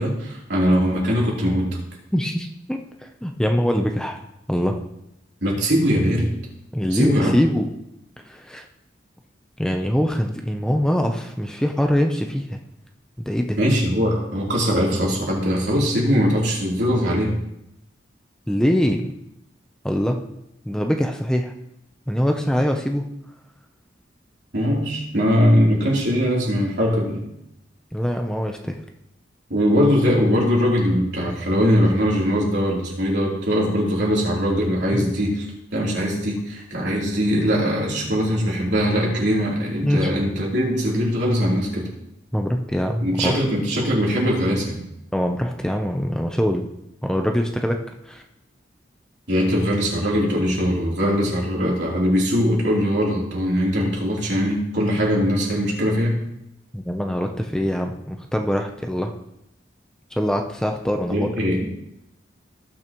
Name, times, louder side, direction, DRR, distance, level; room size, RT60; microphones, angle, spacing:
voice 1, 0.0-1.7 5.4-6.3 6.9-7.3 13.6-17.3 24.5-27.2 29.5-35.4 35.7-41.9 43.0-44.8 49.3-56.2 61.1-61.7, equal, 70° right, -4 dB, 3.3 m, -21 dB
voice 2, 2.1-4.2 4.5-4.8 6.7-7.7 8.3-8.7 9.6-12.6 13.3-13.6 18.5-19.2 19.8-20.2 20.6-21.5 22.1-23.0 27.9-28.8 34.9-35.0 39.8-40.1 42.3-43.5 45.1-46.7 47.0-48.2 56.7-59.1 60.1-61.3, equal, 5° left, 3 dB, 0.6 m, -23 dB
18.5 x 6.3 x 3.0 m, 0.83 s
head